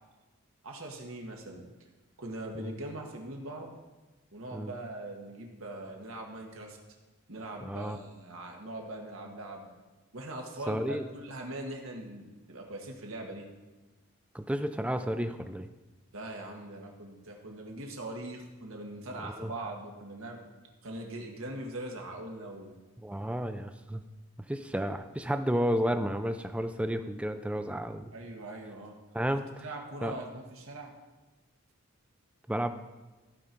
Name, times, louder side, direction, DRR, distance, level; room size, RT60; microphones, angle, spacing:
voice 1, 0.6-1.6 2.2-3.8 4.3-6.8 7.3-9.7 10.1-13.5 16.1-20.4 20.8-22.8 28.1-28.9 29.6-31.0, right 1 dB, 70° right, 1 dB, 1.6 m, -41 dB
voice 2, 7.6-8.0 10.7-11.0 14.3-15.7 19.2-19.5 23.0-24.0 24.5-28.1 29.1-29.6 30.0-30.2 32.5-32.7, equal, 5° right, 9 dB, 0.4 m, -32 dB
15.0 x 5.3 x 4.5 m, 1.2 s
head